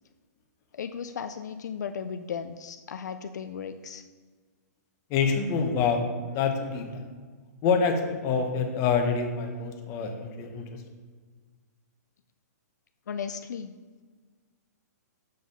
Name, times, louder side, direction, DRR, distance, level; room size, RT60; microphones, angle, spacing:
voice 1, 0.7-4.0 13.1-13.7, left 7 dB, 80° left, 9 dB, 0.4 m, -36 dB
voice 2, 5.1-7.0 7.6-10.8, left 5 dB, 30° left, 4 dB, 0.9 m, -26 dB
6.5 x 3.9 x 5.2 m, 1.5 s
hypercardioid pair, 140°, 9 cm